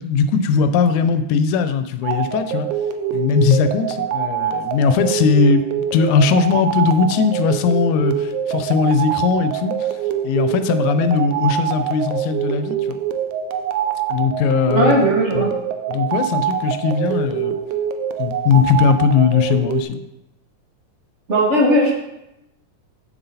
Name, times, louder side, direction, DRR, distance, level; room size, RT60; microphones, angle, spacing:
voice 1, 0.0-2.7 3.1-10.0 10.2-13.0 14.1-15.0 15.4-15.6 15.9-17.6 18.2-20.0, left 5 dB, 85° left, 9 dB, 2.0 m, -19 dB
sound 1, 2.0-19.8, right 9 dB, 90° right, 1.4 m, -24 dB
voice 2, 14.7-15.5 21.3-22.0, equal, 40° right, -2 dB, 1.0 m, -17 dB
7.8 x 6.9 x 4.2 m, 0.89 s
omnidirectional pair, 3.4 m